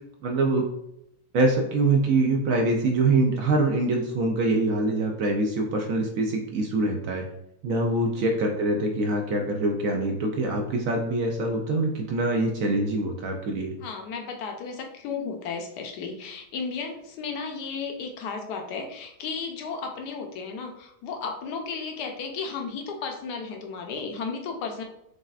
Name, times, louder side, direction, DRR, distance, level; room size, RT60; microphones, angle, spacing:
voice 1, 0.2-0.7 1.3-7.2 7.6-13.7, right 2 dB, 70° right, 2 dB, 0.8 m, -24 dB
voice 2, 8.1-8.5 13.8-24.8, left 5 dB, 75° left, 3 dB, 1.2 m, -34 dB
6.4 x 2.4 x 2.4 m, 0.81 s
omnidirectional pair, 1.8 m